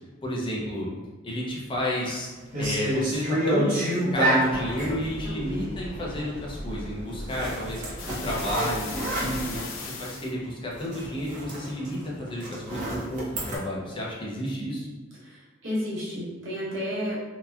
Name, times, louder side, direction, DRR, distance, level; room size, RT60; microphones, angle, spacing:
voice 1, 0.2-0.9 1.2-2.3 2.6-14.9, equal, 25° left, -4 dB, 0.5 m, -31 dB
sound 1, 1.7-2.1 2.5-5.0 7.3-9.9 10.3-10.4 10.7-13.6, right 1 dB, 40° right, 0.7 m, -28 dB
sound 2, 4.5-9.6, equal, 55° left, 0.9 m, -39 dB
voice 2, 5.2-5.6 15.2-17.2, equal, 65° right, -9 dB, 1.1 m, -32 dB
sound 3, 8.0-10.3, left 5 dB, 75° left, 0.4 m, -38 dB
2.9 x 2.2 x 2.3 m, 1.3 s
head